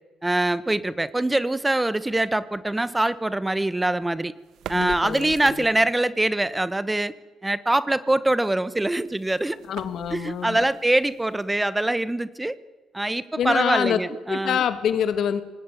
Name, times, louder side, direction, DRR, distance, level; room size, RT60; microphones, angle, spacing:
voice 1, 0.2-4.3 4.7-7.1 7.4-9.6 10.1-12.6 12.9-14.6, right 1 dB, 10° right, 16 dB, 1.2 m, -23 dB
sound 1, 4.4-6.1 8.8-11.7, right 10 dB, 75° right, 1.3 m, -43 dB
voice 2, 4.7-5.6 9.7-10.6 13.4-14.0 14.3-15.4, left 8 dB, 70° left, 11 dB, 2.3 m, -26 dB
24.5 x 20.0 x 9.2 m, 1.2 s
cardioid pair, 90°, 0 cm